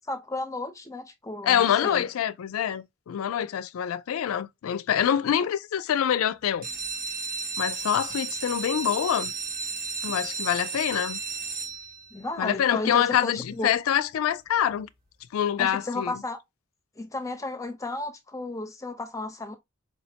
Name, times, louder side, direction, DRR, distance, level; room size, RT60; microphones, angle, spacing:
voice 1, 0.0-2.0 10.1-10.2 12.1-13.7 15.6-16.4 17.0-19.6, left 2 dB, 15° left, 0.6 m, -33 dB
voice 2, 1.4-6.7 7.6-9.3 10.0-11.2 12.4-14.9 15.3-16.2, left 9 dB, 85° left, 0.3 m, -25 dB
sound 1, 6.5-12.2 12.9-13.3 13.7-13.8 14.1-14.2 14.6-14.7, right 4 dB, 45° right, 0.9 m, -33 dB
4.7 x 2.1 x 2.8 m
head